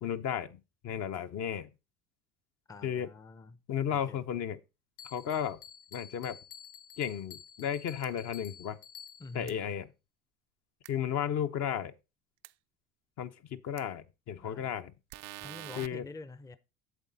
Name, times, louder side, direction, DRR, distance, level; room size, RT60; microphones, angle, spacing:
voice 1, 0.0-0.6 0.8-1.7 2.8-3.1 3.7-4.6 5.0-5.6 5.9-6.4 7.0-8.8 9.3-9.9 10.9-11.9 13.2-14.9 15.8-16.0, left 9 dB, 50° left, 0.9 m, -34 dB
voice 2, 2.7-3.6 3.9-4.2 9.2-9.6 14.4-14.8 15.4-16.6, left 3 dB, 10° left, 0.6 m, -47 dB
Bell, 5.0-9.5, left 8 dB, 90° left, 0.6 m, -51 dB
sound 1, 8.0-8.1 9.5-9.6 10.8-10.9 12.4-12.5 13.8-13.9 15.1-15.9, right 17 dB, 50° right, 0.5 m, -45 dB
8.2 x 7.4 x 4.1 m
hypercardioid pair, 85°, 34 cm